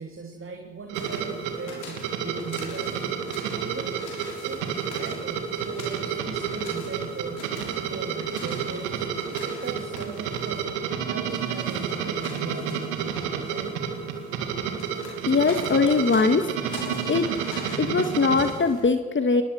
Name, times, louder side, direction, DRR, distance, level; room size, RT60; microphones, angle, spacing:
voice 1, 0.0-3.0 3.5-4.0 4.3-9.1 9.5-13.7, right 4 dB, 40° right, 3 dB, 2.6 m, -39 dB
sound 1, 0.9-18.8, left 4 dB, 65° left, 6.6 m, -43 dB
sound 2, 0.9-18.5, right 7 dB, 80° right, 2.1 m, -30 dB
voice 2, 15.3-16.8 17.1-17.3 17.8-19.4, left 4 dB, 35° left, 8 dB, 1.7 m, -22 dB
23.0 x 20.5 x 6.6 m, 1.4 s
hypercardioid pair, 40°, 33 cm